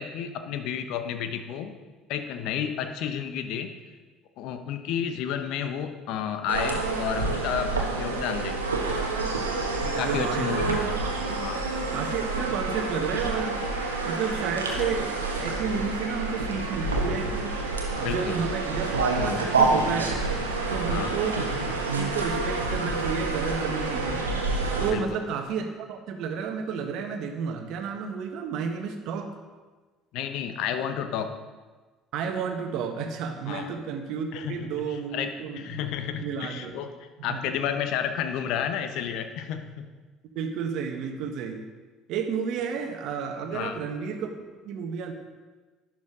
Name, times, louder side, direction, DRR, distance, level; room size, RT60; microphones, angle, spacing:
voice 1, 0.0-1.7 2.1-3.7 4.4-8.6 9.5-10.8 11.4-11.6 12.4-12.5 18.0-18.4 19.2-19.4 20.9-21.1 24.9-25.2 30.1-31.3 33.5-33.7 34.3-36.9 37.2-39.9 43.5-43.8, left 8 dB, 60° left, 8 dB, 0.9 m, -31 dB
sound 1, 6.5-24.9, right 3 dB, 85° right, 1.2 m, -28 dB
voice 2, 9.9-11.4 11.9-13.7 14.1-17.5 18.0-20.2 20.7-24.2 24.8-29.3 32.1-35.8 36.2-36.7 37.2-37.5 40.3-41.6 42.1-45.1, right 6 dB, 60° right, 6 dB, 1.3 m, -32 dB
12.0 x 10.5 x 3.8 m, 1.3 s
figure-of-eight pair, 60°, 0 cm